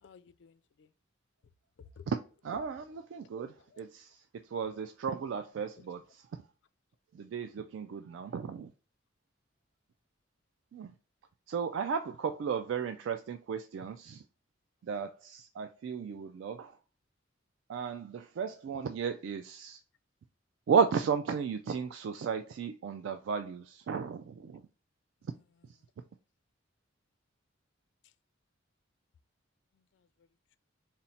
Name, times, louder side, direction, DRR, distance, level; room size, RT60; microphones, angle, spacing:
voice 1, 0.0-0.9 1.8-2.1 3.6-3.8 5.8-5.9 28.0-28.1 29.7-30.3, left 6 dB, 60° left, 0.3 m, -56 dB
voice 2, 2.4-6.4 7.1-8.7 10.7-10.9 11.5-14.2 14.8-16.8 17.7-19.8 20.7-24.6 25.6-25.8, right 6 dB, 70° right, 0.3 m, -34 dB
4.1 x 2.1 x 3.9 m
head